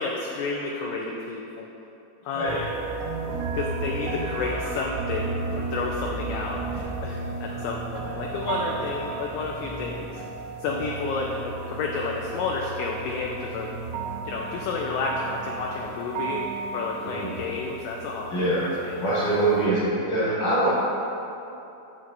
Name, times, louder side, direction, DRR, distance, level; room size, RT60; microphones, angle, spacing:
voice 1, 0.0-1.7 2.2-2.6 3.3-10.2 10.6-13.7 14.2-16.4 16.7-18.5 18.8-19.0, left 4 dB, 85° left, -1 dB, 2.6 m, -31 dB
sound 1, 2.5-19.7, right 4 dB, 90° right, 2.7 m, -34 dB
voice 2, 18.3-18.7 19.0-19.8 20.0-20.7, right 2 dB, 65° left, -10 dB, 2.1 m, -24 dB
10.0 x 7.5 x 2.6 m, 2.9 s
omnidirectional pair, 5.9 m